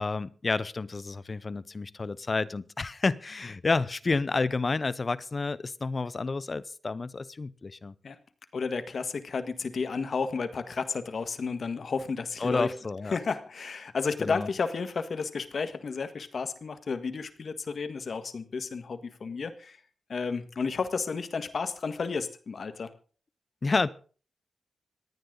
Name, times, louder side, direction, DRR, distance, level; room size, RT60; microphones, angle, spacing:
voice 1, 0.0-7.9 12.4-13.2 14.2-14.5 23.6-23.9, left 3 dB, 45° left, 18 dB, 0.8 m, -30 dB
voice 2, 8.5-12.7 13.1-19.8 20.1-22.9, left 5 dB, 65° left, 10 dB, 1.6 m, -32 dB
26.5 x 9.5 x 3.9 m, 0.40 s
cardioid pair, 65°, 0 cm